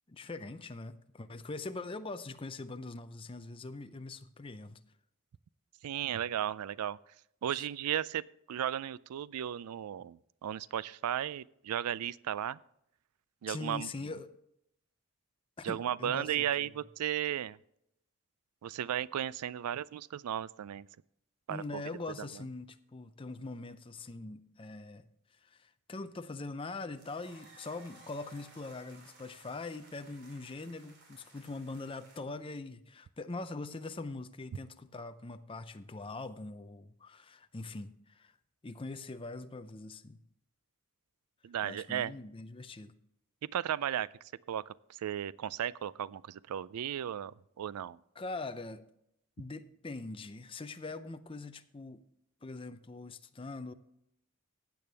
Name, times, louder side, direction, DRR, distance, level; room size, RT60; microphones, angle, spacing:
voice 1, 0.1-4.8 7.5-7.7 13.5-14.3 15.6-16.7 21.5-25.0 25.4-38.3 38.6-40.2 41.6-42.9 48.2-48.8 49.4-52.0 52.4-53.7, left 3 dB, 25° left, 10 dB, 0.5 m, -42 dB
voice 2, 5.8-7.0 7.4-8.2 8.5-12.6 13.4-13.9 15.6-17.6 18.6-20.9 21.5-21.8 41.4-42.1 43.5-44.1 44.5-48.0, right 10 dB, 90° right, 21 dB, 0.4 m, -35 dB
sound 1, 27.0-32.2, right 2 dB, 50° right, 2.7 m, -58 dB
15.5 x 8.5 x 3.4 m, 0.77 s
head